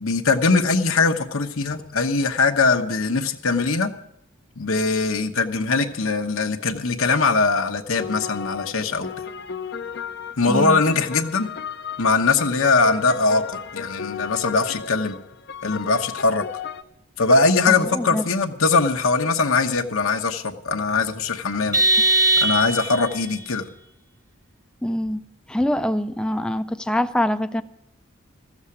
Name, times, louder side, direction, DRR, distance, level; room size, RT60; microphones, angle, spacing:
voice 1, 0.0-3.9 4.6-9.1 10.4-11.5 12.0-15.1 15.6-16.4 17.2-21.8 22.4-23.7, left 4 dB, 75° left, 5 dB, 1.1 m, -21 dB
sound 1, 7.9-16.8, left 7 dB, 50° left, 0.6 m, -35 dB
voice 2, 10.5-10.8 17.7-18.2 24.8-25.2 25.5-27.6, left 1 dB, 5° left, 10 dB, 0.5 m, -24 dB
Vehicle horn car horn honking, 21.7-23.1, right 2 dB, 15° right, 1.1 m, -19 dB
14.5 x 7.2 x 9.8 m, 0.79 s
head